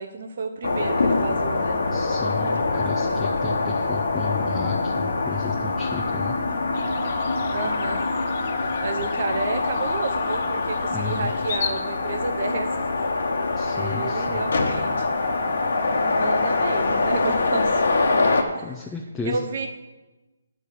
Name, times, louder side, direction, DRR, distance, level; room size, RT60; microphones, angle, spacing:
voice 1, 0.0-1.8 7.5-8.0 8.8-12.7 13.7-15.2 16.0-17.9 18.5-18.7 19.2-19.7, right 3 dB, 55° right, 4 dB, 0.8 m, -31 dB
sound 1, 0.6-18.4, left 3 dB, 75° left, 1.2 m, -24 dB
voice 2, 1.9-6.4 10.9-11.3 13.6-14.5 18.6-19.4, left 5 dB, 10° left, 0 dB, 0.7 m, -33 dB
sound 2, 6.7-11.8, left 7 dB, 45° left, 0.7 m, -37 dB
10.5 x 4.7 x 6.9 m, 1.1 s
hypercardioid pair, 150°, 0 cm